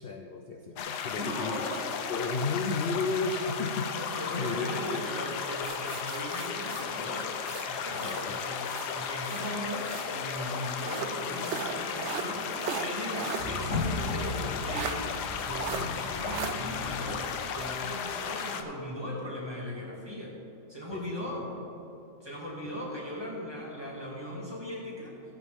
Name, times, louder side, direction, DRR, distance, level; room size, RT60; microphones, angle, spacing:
voice 1, 0.0-1.7 2.1-5.1 7.9-8.4 20.9-21.7 22.6-22.7, left 4 dB, 70° left, 4 dB, 0.5 m, -34 dB
sound 1, 0.8-18.6, left 6 dB, 90° left, 1.3 m, -35 dB
voice 2, 1.2-1.9 4.2-7.4 7.7-8.6 8.9-15.1 15.4-20.3 20.7-21.5 22.2-25.1, left 1 dB, 15° right, -5 dB, 2.3 m, -38 dB
sound 2, 5.6-8.3 8.6-10.2 10.8-13.5 13.9-14.0 14.7-15.0 15.5-15.8 16.3-16.5, right 8 dB, 70° right, 0.6 m, -38 dB
sound 3, 13.4-18.2, left 2 dB, 55° left, 1.7 m, -37 dB
15.5 x 8.4 x 3.5 m, 3.0 s
omnidirectional pair, 1.7 m